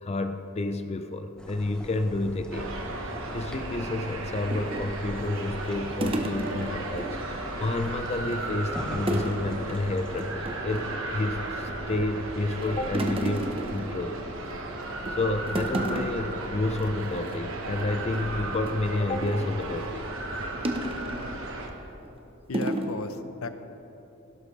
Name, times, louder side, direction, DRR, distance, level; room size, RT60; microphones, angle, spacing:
voice 1, 0.0-2.7 3.0-14.2 15.1-20.1, left 2 dB, 30° left, 8 dB, 0.4 m, -30 dB
sound 1, 1.4-10.3, equal, 5° left, 1.0 m, -43 dB
sound 2, 2.5-21.7, right 2 dB, 70° right, 1.3 m, -35 dB
sound 3, 4.5-7.1 7.4-7.5 7.8-8.5 9.1-9.4 9.7-9.9 10.2-11.0 11.5-12.1 12.4-14.5 14.9-15.2 15.5-16.3 16.7-16.8 17.1-17.4 17.8-19.6 20.6-21.3 21.9-22.1 22.5-22.9, right 1 dB, 25° right, 0.8 m, -33 dB
voice 2, 22.5-23.5, left 3 dB, 75° left, 10 dB, 0.7 m, -34 dB
16.5 x 11.5 x 3.3 m, 3.0 s
head